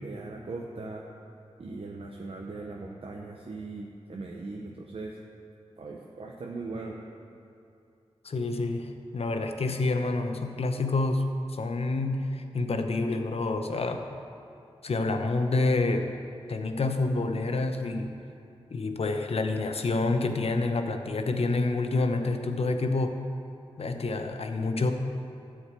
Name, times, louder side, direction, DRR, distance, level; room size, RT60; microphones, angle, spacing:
voice 1, 0.0-1.0 1.6-5.2 5.8-7.0, right 3 dB, 60° right, -1 dB, 0.9 m, -39 dB
voice 2, 8.2-11.2 11.5-14.0 14.8-16.1 16.5-18.1 18.7-23.2 23.8-24.9, left 3 dB, 65° left, 6 dB, 0.9 m, -28 dB
13.0 x 4.9 x 8.3 m, 2.7 s
wide cardioid pair, 70°, 11 cm